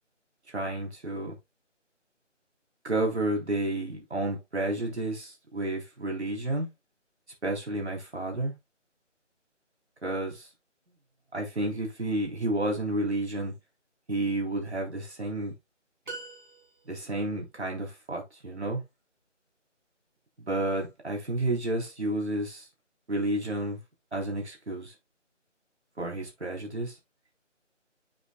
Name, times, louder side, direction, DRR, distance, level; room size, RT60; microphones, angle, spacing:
voice 1, 0.5-1.4 2.8-6.7 7.4-8.5 10.0-10.5 11.3-13.5 14.1-15.5 16.9-18.8 20.4-22.7 23.1-23.8 24.1-24.9 26.0-27.0, right 1 dB, 60° right, 3.5 m, -31 dB
sound 1, 16.0-17.2, right 3 dB, 40° right, 3.1 m, -43 dB
9.1 x 6.5 x 2.3 m
figure-of-eight pair, 160°, 37 cm